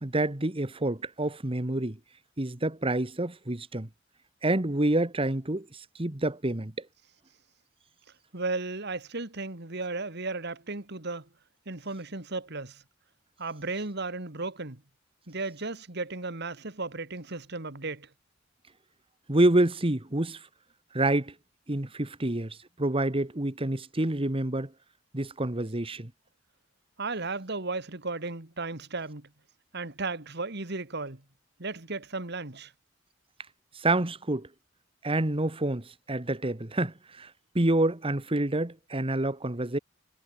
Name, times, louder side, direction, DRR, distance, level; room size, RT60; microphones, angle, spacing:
voice 1, 0.0-2.0 2.4-3.9 4.4-5.7 6.0-6.9 19.3-20.4 20.9-21.3 21.7-24.7 25.1-26.1 33.7-34.5 35.0-37.3 37.5-39.8, right 1 dB, 30° right, 1.5 m, -27 dB
voice 2, 8.3-11.3 11.7-12.8 13.4-14.8 15.3-18.1 27.0-29.3 29.7-31.2 31.6-32.7, right 3 dB, 60° right, 2.4 m, -35 dB
head